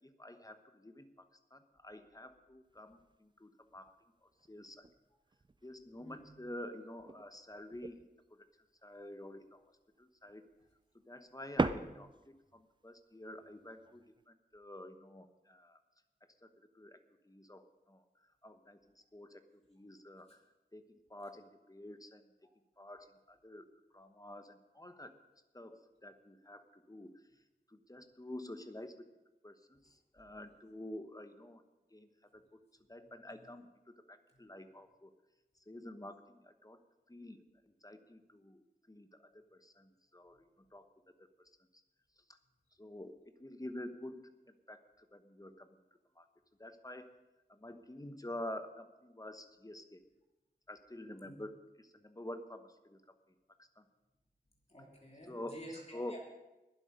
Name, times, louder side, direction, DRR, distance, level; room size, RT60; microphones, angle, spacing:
voice 1, 0.0-4.0 4.2-4.9 5.6-8.0 8.3-8.5 8.8-9.6 10.0-10.4 11.1-15.8 16.4-17.0 17.2-20.4 20.7-22.3 22.8-23.7 23.9-25.1 25.5-27.1 27.7-28.9 29.4-31.6 31.9-32.6 32.9-35.1 35.7-36.8 37.1-40.9 41.2-41.5 42.8-45.8 46.2-46.3 46.6-47.1 47.5-50.0 50.7-51.5 51.8-53.1 53.6-53.8 55.2-55.6 55.9-56.2, left 1 dB, 20° left, 8 dB, 1.1 m, -49 dB
sound 1, 2.7-3.3 3.7-3.9 4.3-6.6 7.0-8.3 8.7-9.6 10.0-10.8 11.1-12.6 13.2-14.2, right 3 dB, 25° right, 0.5 m, -41 dB
voice 2, 54.7-56.2, equal, 35° left, -2 dB, 2.9 m, -51 dB
21.0 x 7.8 x 5.2 m, 1.0 s
wide cardioid pair, 80°, 17 cm